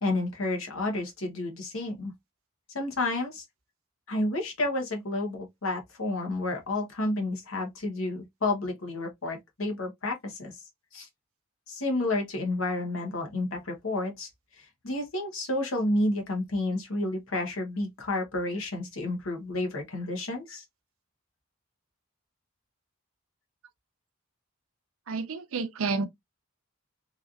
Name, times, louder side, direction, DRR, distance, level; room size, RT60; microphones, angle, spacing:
voice 1, 0.0-2.1 2.7-3.4 4.1-10.5 10.9-11.1 11.7-14.3 14.6-20.6, left 2 dB, 75° left, 1.0 m, -30 dB
voice 2, 25.1-26.1, right 4 dB, 80° right, 0.5 m, -30 dB
3.2 x 2.4 x 2.5 m
head